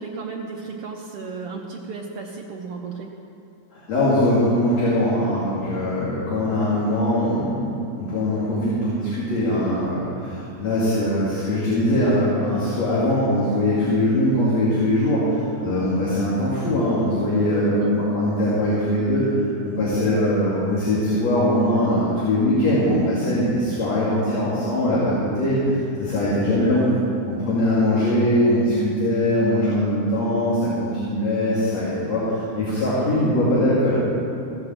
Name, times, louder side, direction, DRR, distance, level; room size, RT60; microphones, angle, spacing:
voice 1, 0.0-3.1 17.8-17.9 26.1-26.7, right 4 dB, 80° right, 0 dB, 1.3 m, -34 dB
voice 2, 3.7-19.3 19.6-26.9 27.3-34.0, left 1 dB, 60° left, -8 dB, 3.6 m, -21 dB
15.5 x 7.5 x 7.7 m, 2.7 s
omnidirectional pair, 3.6 m